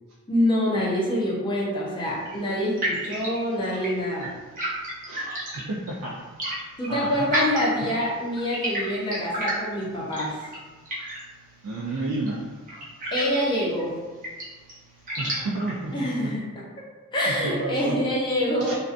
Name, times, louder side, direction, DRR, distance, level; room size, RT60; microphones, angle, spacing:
voice 1, 0.3-4.3 6.8-10.5 13.1-13.9 15.9-16.4 17.1-18.8, equal, 20° left, -5 dB, 0.5 m, -26 dB
sound 1, 2.0-15.9, right 1 dB, 35° right, 0.6 m, -34 dB
voice 2, 5.5-6.4 6.9-7.3 7.8-7.9 11.6-12.6 15.2-16.3 17.3-18.1 18.6-18.7, right 2 dB, 75° right, -3 dB, 0.4 m, -31 dB
2.5 x 2.2 x 2.4 m, 1.3 s
head